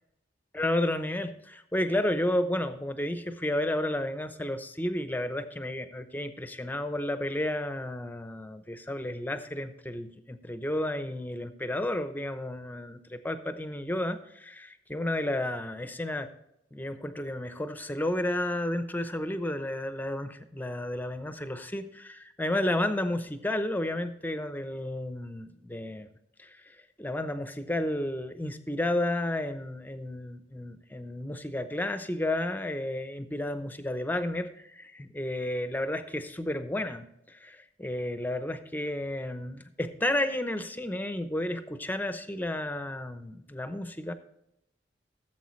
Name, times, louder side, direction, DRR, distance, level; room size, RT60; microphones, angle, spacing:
voice 1, 0.5-16.3 16.7-26.1 26.4-44.1, left 1 dB, 10° left, 10 dB, 0.7 m, -32 dB
15.5 x 7.7 x 3.2 m, 0.80 s
head